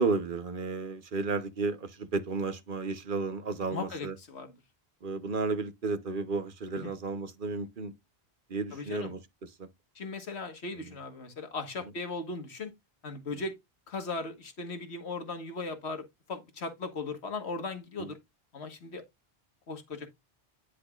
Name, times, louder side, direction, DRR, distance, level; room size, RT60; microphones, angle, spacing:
voice 1, 0.0-4.1 5.0-7.9 8.5-9.2, right 4 dB, 55° right, 1.1 m, -32 dB
voice 2, 3.7-4.5 6.7-7.0 8.7-9.1 9.9-12.7 13.0-13.5 13.9-18.2 18.5-19.0 19.7-20.1, left 3 dB, 90° left, 1.8 m, -38 dB
10.0 x 6.3 x 2.4 m
omnidirectional pair, 1.1 m